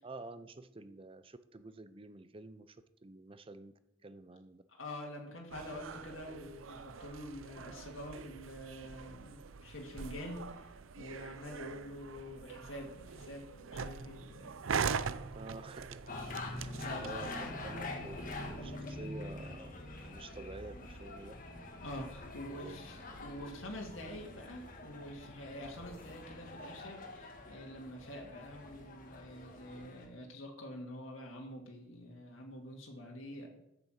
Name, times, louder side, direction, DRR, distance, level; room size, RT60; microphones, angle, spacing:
voice 1, 0.0-3.7 4.0-4.6 15.3-16.0 16.5-16.7 17.0-19.7 20.1-21.3 22.5-23.2, right 2 dB, 25° right, 12 dB, 0.5 m, -49 dB
voice 2, 4.8-15.0 16.8-17.8 21.8-33.5, left 1 dB, 80° left, 0 dB, 1.9 m, -46 dB
sound 1, 5.5-18.8, right 6 dB, 80° right, 0.5 m, -42 dB
sound 2, 16.1-30.1, left 2 dB, 40° left, 1.7 m, -45 dB
sound 3, 18.1-27.5, equal, 10° left, 4.6 m, -59 dB
8.6 x 6.8 x 7.6 m, 0.85 s
head